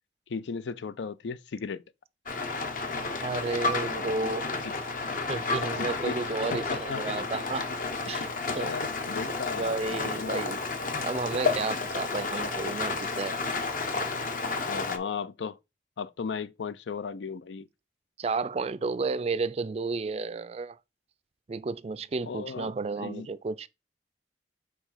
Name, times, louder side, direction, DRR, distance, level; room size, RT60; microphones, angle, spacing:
voice 1, 0.3-1.8 4.6-4.8 5.7-6.2 6.5-7.1 8.5-10.4 14.7-15.6 16.0-17.7 22.2-22.7 23.0-23.3, left 5 dB, 80° left, 0.5 m, -36 dB
Rain, 2.3-15.0, left 3 dB, 50° left, 0.9 m, -31 dB
voice 2, 3.1-4.5 5.3-7.8 8.0-8.3 8.5-8.7 9.5-10.6 11.0-13.4 18.2-20.8 21.5-23.7, right 4 dB, 35° right, 0.4 m, -32 dB
5.0 x 4.0 x 5.7 m
head